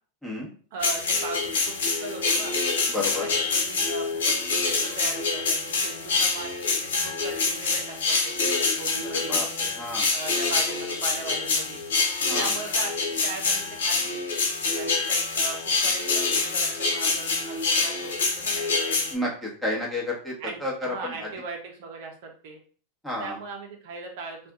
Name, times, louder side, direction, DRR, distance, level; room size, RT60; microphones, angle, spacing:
voice 1, 0.7-2.5 3.0-9.4 10.1-11.8 12.2-12.9 13.2-14.2 14.8-19.0 20.4-22.6 23.2-24.4, right 4 dB, 65° right, 1 dB, 0.8 m, -39 dB
sound 1, 0.8-19.1, left 4 dB, 80° left, 1.0 m, -26 dB
voice 2, 2.9-3.3 9.3-10.1 12.3-12.5 19.1-20.3 20.6-21.3 23.0-23.4, left 2 dB, ahead, -4 dB, 1.3 m, -31 dB
2.6 x 2.5 x 3.5 m, 0.43 s
hypercardioid pair, 105°, 0 cm